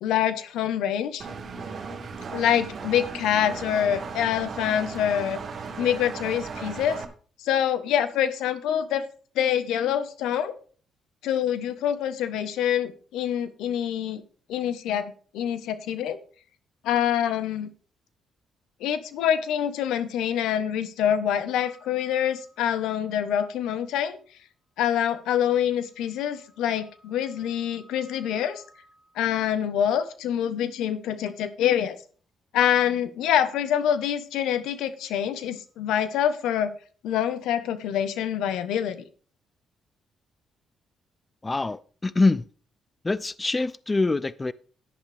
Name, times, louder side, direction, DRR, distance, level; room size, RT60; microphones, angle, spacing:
voice 1, 0.0-1.3 2.3-5.4 5.8-7.0 7.4-9.0 9.3-10.5 11.2-14.2 14.5-16.2 16.8-17.7 18.8-24.2 24.8-28.6 29.1-32.0 32.5-36.7 37.0-39.0, left 9 dB, 90° left, 1.1 m, -26 dB
Engine, 1.2-7.0, right 5 dB, 50° right, 1.5 m, -36 dB
sound 1, 21.5-23.2 25.2-29.5 35.5-36.3, right 1 dB, 65° left, 5.9 m, -58 dB
voice 2, 41.4-42.4 43.0-44.5, left 3 dB, 20° left, 0.4 m, -24 dB
11.0 x 10.5 x 3.4 m
cardioid pair, 90°, 0 cm